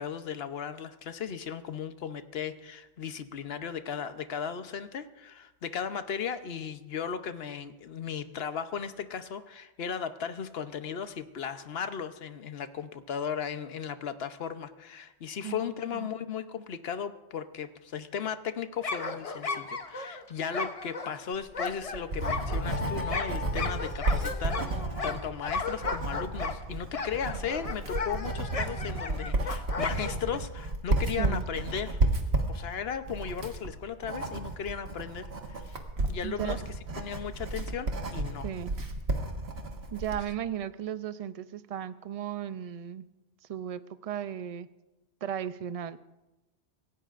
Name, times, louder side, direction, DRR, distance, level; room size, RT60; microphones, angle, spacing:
voice 1, 0.0-32.0 32.5-35.8 36.1-36.6 37.0-38.5, left 7 dB, 65° left, 10 dB, 1.0 m, -36 dB
voice 2, 15.4-16.1 31.2-31.4 36.2-36.6 38.4-38.7 39.9-43.1 43.5-44.7 45.2-46.0, right 10 dB, 45° right, 13 dB, 0.5 m, -35 dB
sound 1, 18.8-30.4, left 4 dB, 35° left, 0.8 m, -35 dB
Writing, 21.5-40.3, right 2 dB, 70° right, 1.7 m, -32 dB
27.0 x 16.0 x 2.5 m, 1.1 s
omnidirectional pair, 1.1 m